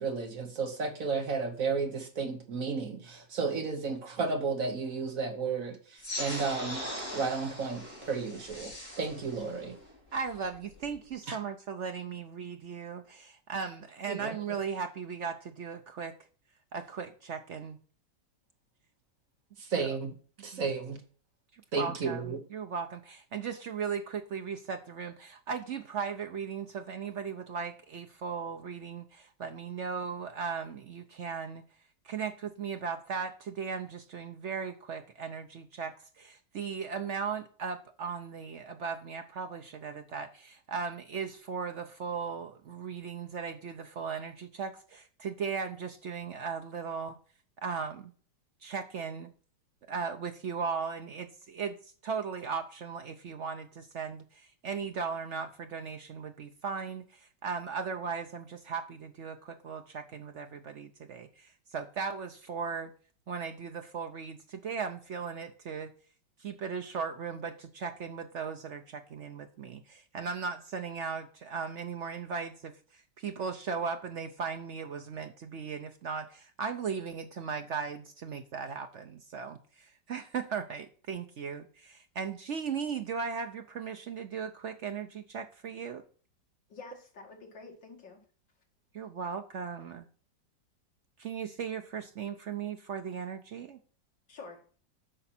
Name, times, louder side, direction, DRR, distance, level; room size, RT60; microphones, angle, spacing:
voice 1, 0.0-6.8 7.1-9.8 11.3-11.4 14.1-14.4 19.6-20.1 20.4-21.0 21.7-22.4, right 4 dB, 50° right, 1.4 m, -33 dB
sound 1, 6.0-11.0, left 1 dB, 40° left, 4.7 m, -40 dB
voice 2, 10.1-16.1 16.7-17.8 19.8-19.9 20.5-20.6 21.5-31.6 32.0-47.2 47.6-48.1 48.6-49.3 49.9-62.9 63.3-65.9 66.4-86.0 88.9-90.1 91.2-93.8, right 6 dB, 70° right, 0.6 m, -37 dB
voice 3, 86.7-88.2 94.3-94.6, left 4 dB, 75° left, 2.9 m, -48 dB
8.7 x 5.9 x 4.2 m
omnidirectional pair, 2.0 m